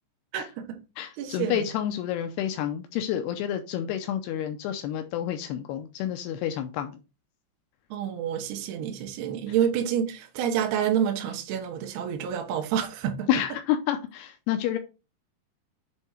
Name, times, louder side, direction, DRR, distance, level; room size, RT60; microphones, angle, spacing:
voice 1, 0.3-0.8 1.2-1.7 7.9-13.3, right 9 dB, 70° right, 2.8 m, -28 dB
voice 2, 1.0-7.0 13.3-14.8, left 10 dB, 85° left, 2.2 m, -29 dB
8.0 x 3.6 x 4.3 m
omnidirectional pair, 5.3 m